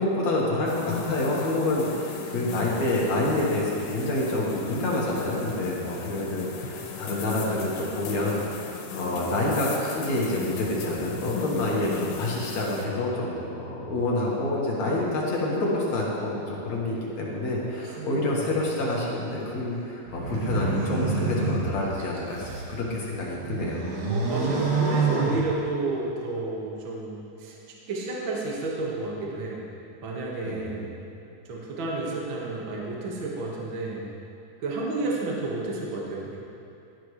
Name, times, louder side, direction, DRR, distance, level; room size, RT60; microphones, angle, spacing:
voice 1, 0.0-22.5 22.8-23.8 30.4-30.8, left 2 dB, 55° left, -4 dB, 2.5 m, -27 dB
sound 1, 0.7-12.9, left 6 dB, 90° left, 3.1 m, -37 dB
voice 2, 17.8-18.4 24.1-29.7 30.0-30.9 31.5-34.1 34.6-36.4, right 2 dB, 45° right, -4 dB, 1.6 m, -31 dB
sound 2, 20.1-22.7 23.2-26.0, right 4 dB, 90° right, 4.0 m, -28 dB
16.0 x 12.0 x 3.3 m, 2.7 s
omnidirectional pair, 4.5 m